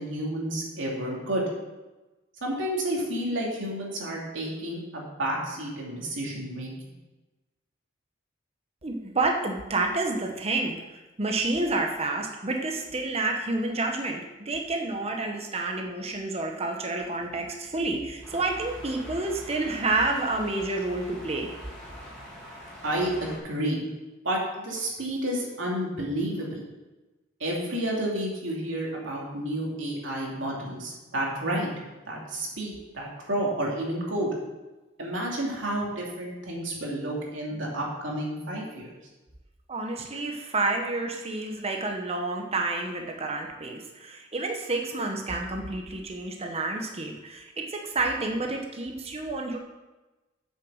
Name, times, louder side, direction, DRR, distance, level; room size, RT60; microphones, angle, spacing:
voice 1, 0.0-1.5 2.4-6.9 22.8-23.8 24.2-26.6 27.4-31.7 32.0-34.3 35.0-39.0, right 1 dB, 85° right, -2 dB, 2.7 m, -30 dB
voice 2, 8.8-10.8 11.2-21.5 39.7-49.6, right 2 dB, 35° right, 2 dB, 0.9 m, -29 dB
sound 1, 18.2-23.4, equal, 5° left, 2.8 m, -43 dB
8.0 x 6.7 x 6.3 m, 1.1 s
head